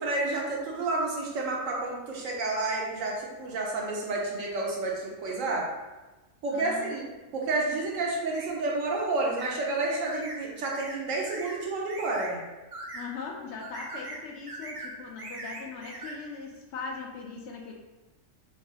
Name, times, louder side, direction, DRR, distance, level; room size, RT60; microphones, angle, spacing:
voice 1, 0.0-5.7 6.4-7.0 7.3-12.4, right 2 dB, 75° right, -2 dB, 1.1 m, -30 dB
voice 2, 5.3-5.7 6.5-6.9 12.9-17.7, left 4 dB, 65° left, -1 dB, 0.8 m, -40 dB
sound 1, 8.3-8.5 9.4-9.6 9.9-10.4 10.7-11.0 11.3-11.6 11.9-12.3 12.7-13.1 13.6-14.2 14.5-14.9 15.2-16.1, right 2 dB, 40° right, 0.5 m, -40 dB
4.7 x 2.3 x 2.8 m, 1.1 s
omnidirectional pair, 1.4 m